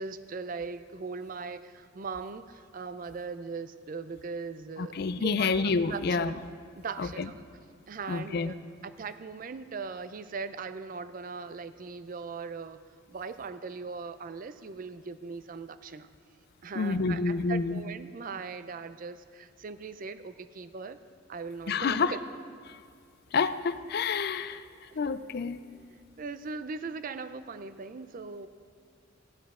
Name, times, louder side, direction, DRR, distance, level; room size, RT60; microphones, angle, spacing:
voice 1, 0.0-5.5 5.9-6.4 6.8-7.3 7.9-8.6 8.8-12.8 13.1-16.1 16.6-21.0 21.3-22.2 25.9-28.5, right 4 dB, 45° right, 12 dB, 0.4 m, -39 dB
voice 2, 4.8-6.3 7.0-7.3 8.1-8.5 16.7-17.8 21.7-22.1 22.7-22.8 23.3-25.6, left 4 dB, 55° left, 12 dB, 0.4 m, -29 dB
15.0 x 10.0 x 3.7 m, 2.2 s
head